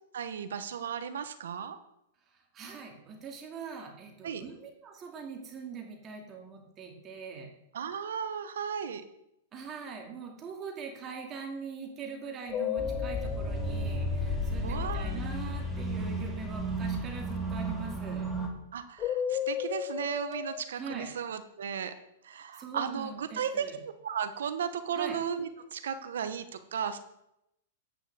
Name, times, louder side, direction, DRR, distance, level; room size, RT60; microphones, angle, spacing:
voice 1, 0.1-1.8 4.2-4.4 7.7-9.0 14.6-15.2 18.7-21.9 22.2-23.7 24.0-27.0, right 7 dB, 75° right, 11 dB, 1.0 m, -35 dB
voice 2, 2.5-7.5 9.5-18.3 20.8-21.1 22.6-23.8 25.0-25.2, right 5 dB, 30° right, 2 dB, 2.4 m, -42 dB
sound 1, 12.5-14.9 19.0-20.6, left 10 dB, 30° left, 0.5 m, -34 dB
sound 2, 12.8-18.5, equal, ahead, 2.5 m, -33 dB
8.7 x 6.2 x 6.7 m, 0.83 s
hypercardioid pair, 120°, 0 cm